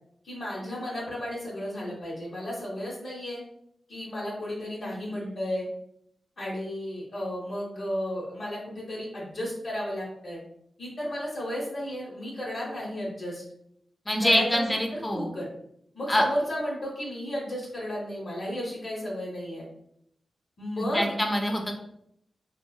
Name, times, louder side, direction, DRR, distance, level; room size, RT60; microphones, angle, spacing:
voice 1, 0.2-3.4 3.9-5.6 6.4-10.4 10.8-13.4 14.2-15.5 15.9-19.7 20.6-21.1, equal, 65° left, -5 dB, 0.8 m, -33 dB
voice 2, 14.1-15.3 16.1-16.2 20.9-21.7, left 1 dB, 20° left, 2 dB, 0.6 m, -25 dB
2.8 x 2.3 x 2.2 m, 0.72 s
cardioid pair, 55°, 0 cm